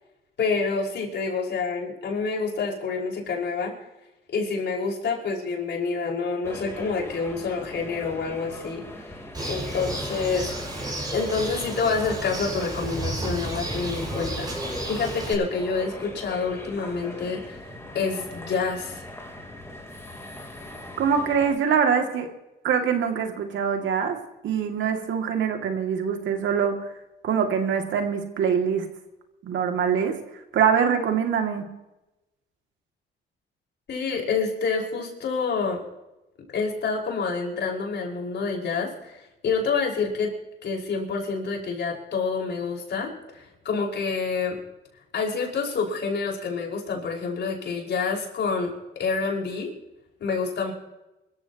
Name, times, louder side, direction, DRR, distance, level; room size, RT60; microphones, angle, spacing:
voice 1, 0.4-3.7 4.3-9.0 9.5-10.5 11.1-17.6 17.9-19.0 33.9-35.8 36.5-40.3 40.6-44.6 45.1-49.7 50.2-50.7, left 4 dB, 60° left, 0 dB, 5.5 m, -28 dB
sound 1, 6.4-21.5, left 1 dB, 15° left, 3.8 m, -39 dB
Bird, 9.3-15.3, right 2 dB, 20° right, 6.1 m, -32 dB
voice 2, 21.0-22.3 22.6-24.2 24.4-26.9 27.2-28.9 29.4-30.2 30.5-31.6, right 7 dB, 75° right, 4 dB, 2.5 m, -24 dB
25.0 x 14.5 x 3.0 m, 0.97 s
cardioid pair, 90°, 20 cm